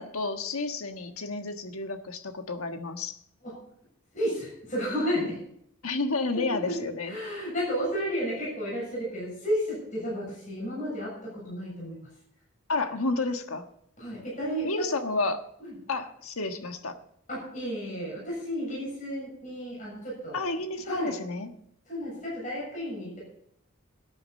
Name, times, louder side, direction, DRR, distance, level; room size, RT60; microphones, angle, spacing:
voice 1, 0.0-3.2 5.8-7.1 12.7-13.7 14.6-15.4 15.9-17.0 20.3-21.5, left 3 dB, 90° left, 7 dB, 1.4 m, -31 dB
voice 2, 4.1-5.4 6.3-12.1 14.0-14.9 15.6-15.8 17.3-20.4 20.9-21.2 21.9-23.2, equal, 35° left, -5 dB, 7.1 m, -32 dB
17.5 x 9.8 x 4.2 m, 0.73 s
head